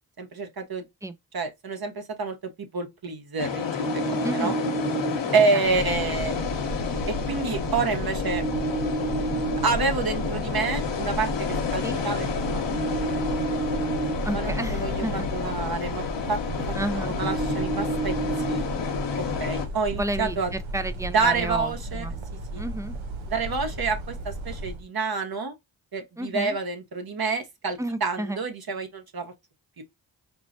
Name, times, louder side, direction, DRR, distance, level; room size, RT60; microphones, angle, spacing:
voice 1, 0.2-0.9 1.3-2.3 2.7-3.7 4.1-4.5 5.3-6.4 7.1-8.4 9.6-13.4 14.3-15.0 15.3-16.7 17.0-18.1 18.5-18.6 19.4-20.5 21.1-22.0 22.5-22.6 23.3-25.5 25.9-29.3 29.8-29.9, right 4 dB, 50° right, 1.1 m, -28 dB
sound 1, 3.4-19.7, left 6 dB, 70° left, 1.0 m, -30 dB
sound 2, 3.8-5.2 8.3-9.6 12.7-14.1 17.2-18.6, right 5 dB, 30° right, 0.9 m, -30 dB
voice 2, 4.2-4.6 5.2-5.8 11.8-12.0 14.2-15.3 16.7-17.1 19.9-22.1 22.5-23.0 26.2-26.6 27.8-28.4, right 1 dB, 5° right, 0.5 m, -32 dB
sound 3, 5.6-24.8, right 1 dB, 85° right, 0.9 m, -34 dB
4.4 x 2.1 x 2.5 m
cardioid pair, 50°, 46 cm